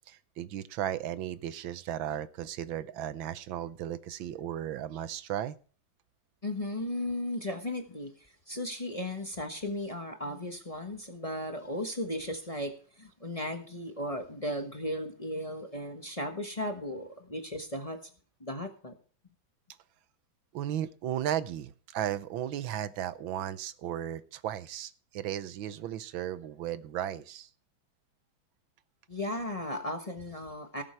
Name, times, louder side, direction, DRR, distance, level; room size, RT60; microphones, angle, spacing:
voice 1, 0.1-5.5 20.5-27.5, right 11 dB, 85° right, 14 dB, 1.6 m, -35 dB
voice 2, 6.4-18.0 18.4-18.9 29.1-30.8, left 1 dB, 20° left, 5 dB, 1.1 m, -36 dB
18.0 x 7.6 x 4.5 m, 0.41 s
omnidirectional pair, 2.1 m